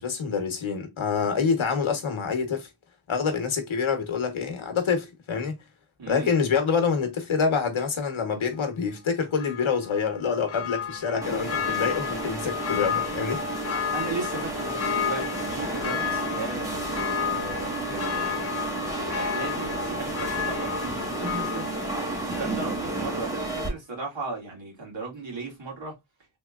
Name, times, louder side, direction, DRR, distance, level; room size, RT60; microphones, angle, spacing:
voice 1, 0.0-2.7 3.1-5.5 6.1-13.6, left 6 dB, 75° left, 1.1 m, -26 dB
voice 2, 6.0-6.3 13.7-17.0 17.3-21.9 22.3-26.0, right 3 dB, 65° right, 2.2 m, -37 dB
Church bell, 9.4-23.0 23.4-23.5, left 7 dB, 30° left, 0.5 m, -32 dB
sound 1, 11.2-23.7, right 2 dB, 5° right, 1.2 m, -32 dB
3.6 x 3.1 x 2.3 m
wide cardioid pair, 65°, 48 cm